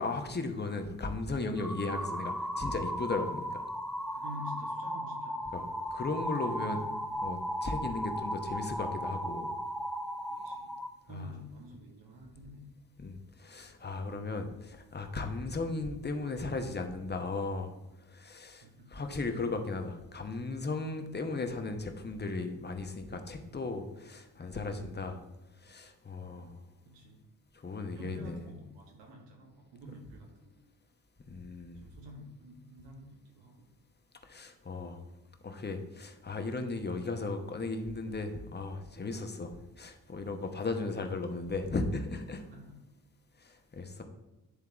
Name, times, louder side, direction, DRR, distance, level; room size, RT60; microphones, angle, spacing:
voice 1, 0.0-3.6 5.5-5.7 5.9-6.8 7.2-9.5 11.1-11.3 13.0-17.7 18.1-18.6 18.9-25.2 25.6-26.5 27.6-28.4 31.3-31.8 34.2-35.0 35.4-42.4 43.4-44.0, left 3 dB, 25° left, 5 dB, 1.0 m, -36 dB
sound 1, 1.6-10.9, equal, ahead, 0.6 m, -36 dB
voice 2, 4.1-5.8 6.4-7.6 10.3-10.8 11.0-12.7 18.6-19.1 26.3-26.6 26.9-27.2 27.9-30.6 31.3-33.7 40.5-40.6 42.5-42.8, left 1 dB, 70° right, 0 dB, 1.9 m, -49 dB
9.8 x 3.5 x 3.5 m, 1.1 s
hypercardioid pair, 50°, 44 cm